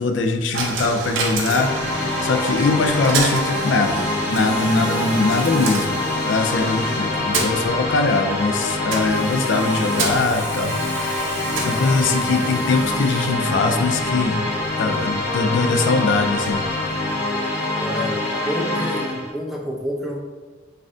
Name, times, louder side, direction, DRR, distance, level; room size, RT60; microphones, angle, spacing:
voice 1, 0.0-11.2 11.6-16.6, left 3 dB, 70° left, 6 dB, 0.4 m, -22 dB
Coin (dropping), 0.5-17.5, right 3 dB, 80° right, 0.6 m, -30 dB
sound 1, 1.4-19.3, left 2 dB, 50° left, 1.3 m, -25 dB
voice 2, 17.7-18.2 18.4-20.2, equal, ahead, -1 dB, 0.4 m, -28 dB
5.3 x 2.4 x 2.6 m, 1.3 s
head